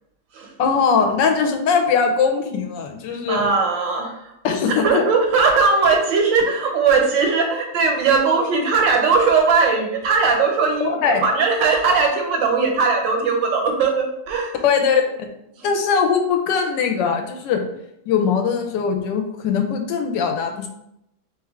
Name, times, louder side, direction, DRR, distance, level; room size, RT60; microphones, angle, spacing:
voice 1, 0.6-3.5 4.4-5.0 10.8-11.2 14.6-15.3 15.6-17.6 18.1-20.7, left 6 dB, 80° left, 5 dB, 1.2 m, -20 dB
voice 2, 3.3-4.3 4.7-14.5 15.6-15.7, right 4 dB, 85° right, 2 dB, 1.5 m, -19 dB
3.3 x 3.3 x 3.5 m, 0.81 s
omnidirectional pair, 2.0 m